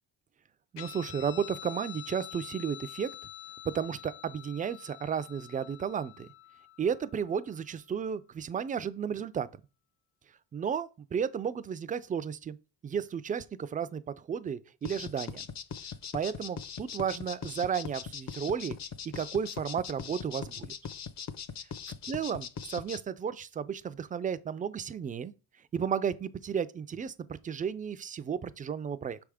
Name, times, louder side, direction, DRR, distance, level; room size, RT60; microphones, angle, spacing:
voice 1, 0.7-3.1 3.6-6.3 6.8-9.6 10.5-12.6 12.8-15.5 16.1-18.8 19.1-20.7 22.1-25.3 25.7-29.2, right 7 dB, 20° right, 0.3 m, -33 dB
Guitar, 0.8-7.7, left 12 dB, 70° left, 1.2 m, -47 dB
sound 1, 14.8-23.0, left 7 dB, 40° left, 0.6 m, -40 dB
6.1 x 3.5 x 4.8 m
cardioid pair, 110°, 44 cm